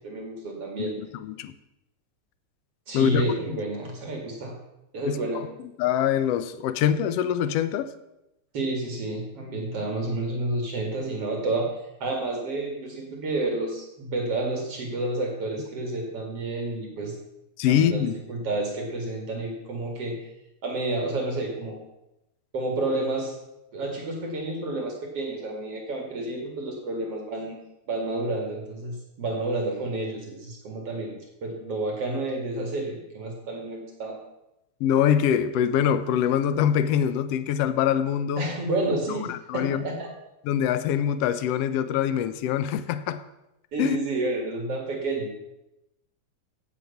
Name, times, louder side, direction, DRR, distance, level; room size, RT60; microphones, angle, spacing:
voice 1, 0.0-1.0 2.9-4.5 4.9-5.4 8.5-11.7 12.0-17.1 17.7-20.3 20.6-21.8 22.5-23.3 23.7-27.6 27.9-34.2 38.4-40.1 43.7-45.3, right 2 dB, 55° right, 1 dB, 3.1 m, -30 dB
voice 2, 0.8-1.5 2.9-3.3 5.1-5.5 5.8-7.9 17.6-18.2 34.8-38.5 39.3-39.9 40.4-43.2 43.8-44.0, left 9 dB, 70° left, 12 dB, 1.6 m, -24 dB
16.0 x 8.3 x 5.7 m, 0.90 s
omnidirectional pair, 3.4 m